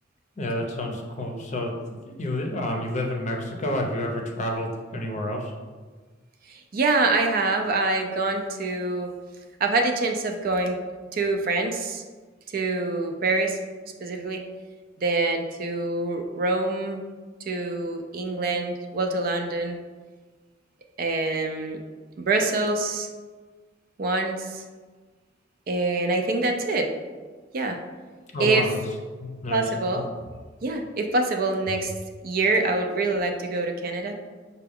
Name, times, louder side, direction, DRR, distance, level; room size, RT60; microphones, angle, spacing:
voice 1, 0.4-1.7 2.2-5.5 28.3-28.8 29.2-29.6 29.9-30.1, left 1 dB, 40° left, 2 dB, 0.6 m, -29 dB
voice 2, 6.5-9.1 9.6-10.8 11.1-12.0 12.5-13.6 14.0-14.4 15.0-17.0 17.5-19.8 21.0-21.8 22.2-23.1 24.0-24.6 25.7-26.9 27.5-27.8 28.4-28.7 29.5-30.1 30.6-31.9 32.2-34.1, right 3 dB, 50° right, 4 dB, 0.4 m, -25 dB
5.8 x 2.2 x 3.5 m, 1.4 s
head